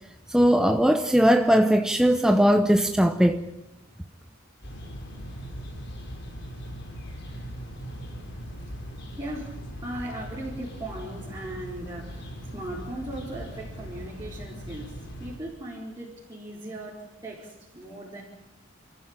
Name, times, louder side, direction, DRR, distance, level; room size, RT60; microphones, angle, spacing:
voice 1, 0.3-3.4, equal, 5° right, 0.8 m, -19 dB
sound 1, 4.6-15.4, equal, 55° left, 4.9 m, -39 dB
voice 2, 9.1-18.2, right 1 dB, 20° right, 4.6 m, -38 dB
29.0 x 14.5 x 9.1 m
head